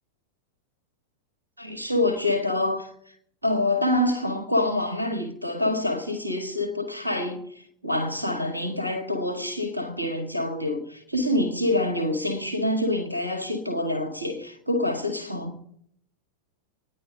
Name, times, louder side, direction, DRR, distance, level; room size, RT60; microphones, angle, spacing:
voice 1, 1.6-2.9 3.4-15.8, left 1 dB, 90° right, 1.8 m, -26 dB
25.5 x 10.0 x 3.8 m
figure-of-eight pair, 90°, 0 cm